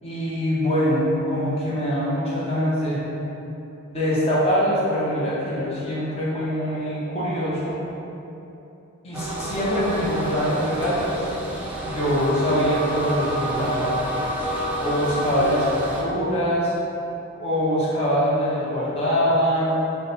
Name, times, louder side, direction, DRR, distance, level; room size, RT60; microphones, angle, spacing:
voice 1, 0.0-3.0 3.9-7.7 9.0-11.3 11.8-13.9 14.7-16.7 17.4-19.7, equal, 30° left, -9 dB, 0.8 m, -23 dB
sound 1, 9.1-16.0, right 1 dB, 5° right, 0.4 m, -29 dB
3.5 x 2.1 x 3.9 m, 2.9 s
head